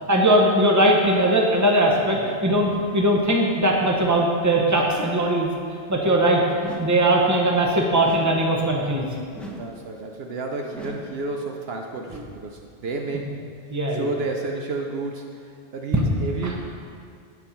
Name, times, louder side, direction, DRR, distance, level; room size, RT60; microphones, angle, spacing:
voice 1, 0.1-5.5 5.9-6.4 6.8-9.1 13.7-14.1, right 1 dB, 15° right, -1 dB, 1.0 m, -20 dB
sound 1, 6.6-7.2 8.0-8.5 9.3-9.9 10.7-11.3, left 1 dB, ahead, 0.7 m, -39 dB
voice 2, 9.5-13.3 13.9-16.6, right 3 dB, 65° right, 2 dB, 0.9 m, -31 dB
9.6 x 5.4 x 5.7 m, 2.2 s
omnidirectional pair, 1.2 m